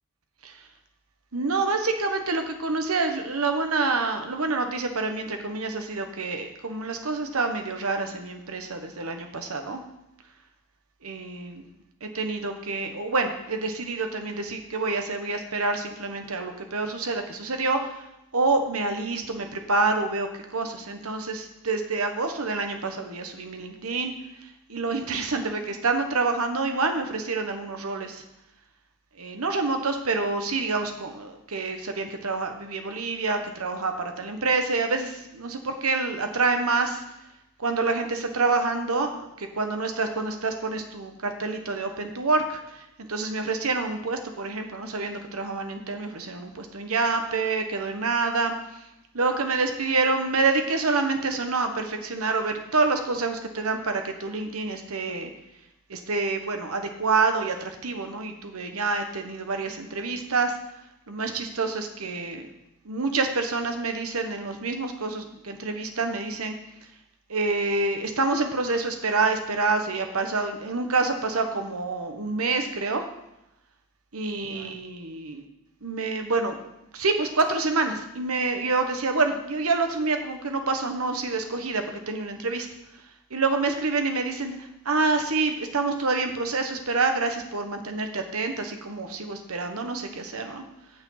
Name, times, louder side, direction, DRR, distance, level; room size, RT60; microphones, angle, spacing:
voice 1, 1.3-9.8 11.0-11.7 12.0-18.1 18.3-24.1 24.4-28.2 29.2-37.0 37.6-48.8 49.1-55.3 55.9-60.6 61.1-62.5 62.8-66.6 67.3-73.1 74.1-75.4 75.8-76.6 76.9-82.7 82.9-83.0 83.3-90.6, right 3 dB, 85° right, 6 dB, 1.2 m, -27 dB
16.0 x 5.7 x 3.9 m, 0.86 s
head